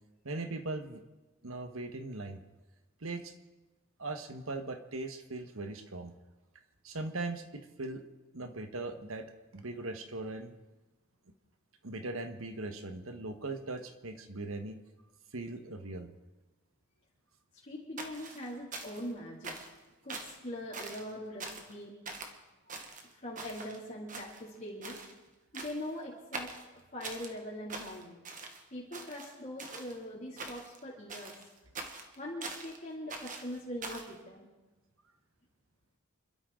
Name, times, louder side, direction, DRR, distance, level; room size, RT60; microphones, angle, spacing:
voice 1, 0.2-1.0 1.4-2.4 3.0-3.3 4.0-6.1 6.8-8.0 8.3-9.3 9.5-10.5 11.8-14.7 15.3-16.1, right 2 dB, 75° right, 7 dB, 1.4 m, -39 dB
voice 2, 17.6-19.5 20.0-21.9 23.1-25.0 25.5-26.5 26.9-28.2 28.7-31.3 32.2-34.5, left 1 dB, 35° left, -7 dB, 2.8 m, -42 dB
sound 1, 18.0-19.1 19.4-19.8 20.1-20.4 20.7-21.1 21.4-21.7 22.1-22.3 22.7-23.8 24.1-24.6 24.8-25.1 25.5-25.9 26.3-27.3 27.7-28.6 28.9-30.0 30.4-30.8 31.1-32.8 33.1-34.1, right 3 dB, 35° right, 1.5 m, -43 dB
28.0 x 12.5 x 3.9 m, 1.1 s
head